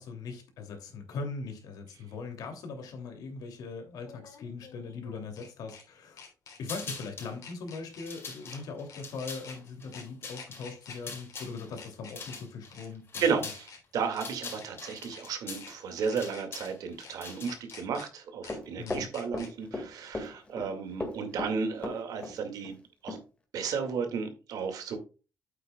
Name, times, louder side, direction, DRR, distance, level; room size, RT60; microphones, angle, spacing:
voice 1, 0.0-6.2 6.6-13.5 18.8-19.1, left 4 dB, 90° left, 4 dB, 2.7 m, -40 dB
sound 1, 1.5-1.6 4.0-5.8 6.2-6.6 7.0-7.1 7.4-8.1 8.4-8.6 8.9-9.6 9.9-10.0 10.3-11.0 11.3-11.4 11.7-12.4 12.7-12.9 13.2-13.8 14.1-14.3 14.6-15.2 15.6-15.7 16.0-16.7 17.0-17.1 17.4-18.1 18.4-18.5 18.9-19.5, left 5 dB, 65° left, 3.2 m, -48 dB
sound 2, 6.6-7.3 7.9-13.7 13.9-17.7, left 4 dB, 40° left, 4.3 m, -43 dB
voice 2, 13.2-22.8 23.0-23.2 23.5-25.0, right 6 dB, 85° right, 6 dB, 2.1 m, -33 dB
Run, 18.5-19.9 20.1-20.7 21.0-22.4 22.6-22.7 23.1-23.2, left 2 dB, 20° left, 2.0 m, -36 dB
8.9 x 8.3 x 2.3 m, 0.33 s
cardioid pair, 135°, 6 cm